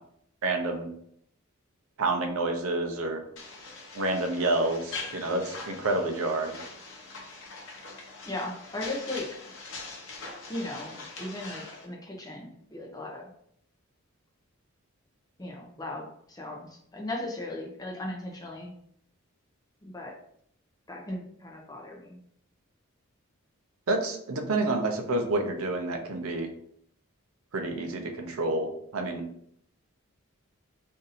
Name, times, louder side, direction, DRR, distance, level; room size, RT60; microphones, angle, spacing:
voice 1, 0.4-0.9 2.0-3.2 3.9-6.6 23.9-26.5 27.5-29.2, right 2 dB, 75° right, 4 dB, 0.6 m, -28 dB
sound 1, 3.4-11.8, left 3 dB, 60° left, 0.8 m, -42 dB
voice 2, 8.3-9.3 10.5-13.2 15.4-16.6 16.9-18.7 19.8-20.2 20.9-22.2, left 1 dB, 15° left, -1 dB, 0.5 m, -37 dB
2.6 x 2.6 x 4.0 m, 0.69 s
head